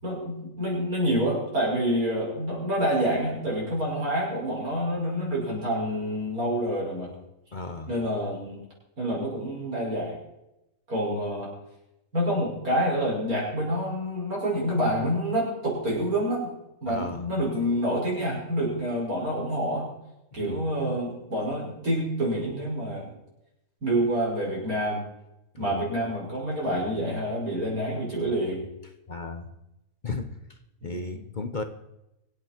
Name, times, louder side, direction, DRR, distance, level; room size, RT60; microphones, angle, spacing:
voice 1, 0.0-7.1 7.9-8.6 9.0-10.2 10.9-11.5 12.1-16.5 16.8-19.9 20.3-23.1 23.8-25.0 25.6-28.7 30.8-31.2, equal, 90° right, -4 dB, 6.3 m, -27 dB
voice 2, 7.5-7.9 16.8-17.2 20.4-20.6 25.6-25.9 29.1-29.5 30.0-30.3 30.8-31.6, left 3 dB, 35° left, 7 dB, 1.0 m, -34 dB
25.5 x 8.5 x 4.5 m, 0.89 s
omnidirectional pair, 1.5 m